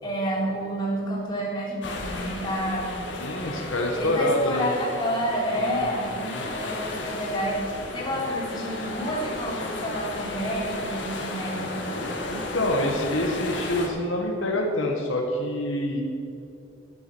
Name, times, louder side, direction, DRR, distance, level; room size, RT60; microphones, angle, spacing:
voice 1, 0.0-2.9 4.0-6.1 6.5-7.6 7.9-11.8, equal, 20° left, -6 dB, 3.8 m, -29 dB
sound 1, 1.8-13.9, left 2 dB, 65° left, 2.1 m, -34 dB
voice 2, 3.2-4.7 5.6-6.5 12.3-16.0, left 1 dB, 85° left, 1 dB, 1.8 m, -26 dB
12.0 x 9.8 x 6.4 m, 2.6 s
head